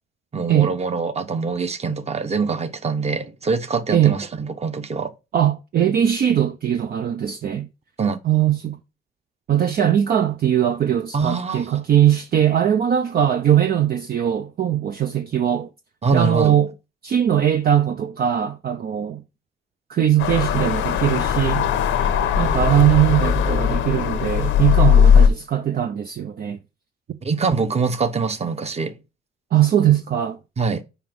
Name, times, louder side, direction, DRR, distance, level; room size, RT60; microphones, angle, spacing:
voice 1, 0.3-5.1 8.0-8.2 11.1-11.7 16.0-16.6 27.2-29.0 30.6-30.8, right 4 dB, 30° right, 1.0 m, -24 dB
voice 2, 5.3-7.7 8.2-8.8 9.5-15.7 16.1-16.7 17.0-19.2 19.9-22.0 22.3-26.6 29.5-30.4, right 10 dB, 50° right, 0.6 m, -20 dB
sound 1, 20.2-25.3, left 8 dB, 85° left, 1.0 m, -18 dB
5.8 x 5.0 x 5.9 m
cardioid pair, 90°, 20 cm